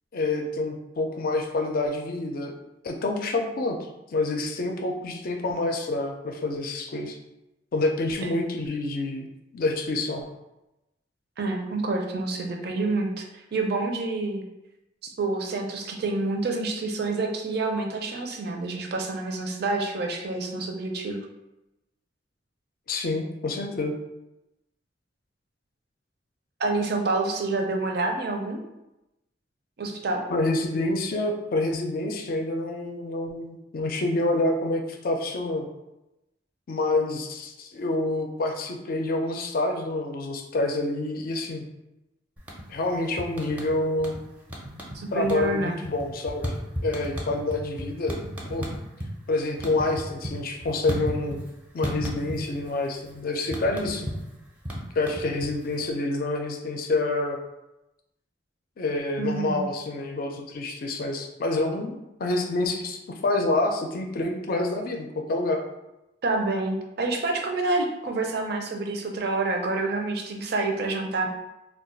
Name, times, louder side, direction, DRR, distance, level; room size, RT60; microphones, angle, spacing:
voice 1, 0.1-2.5 2.8-3.8 4.1-7.2 7.7-9.3 9.5-10.3 22.9-23.9 30.3-35.7 36.7-41.6 42.7-44.2 45.1-46.5 46.8-48.2 48.5-48.7 49.3-51.4 51.7-54.1 55.0-57.4 58.8-65.6, left 2 dB, 50° left, 3 dB, 0.4 m, -27 dB
voice 2, 11.4-14.4 15.0-21.3 26.6-28.6 29.8-30.3 44.9-45.8 59.2-59.7 66.2-71.3, right 3 dB, 60° right, 2 dB, 0.5 m, -28 dB
sound 1, 42.4-42.9 43.2-44.2 44.5-45.0 45.2-49.1 49.4-51.5 51.8-52.7 52.9-55.8, equal, 10° right, 0.5 m, -33 dB
2.3 x 2.3 x 3.9 m, 0.93 s
head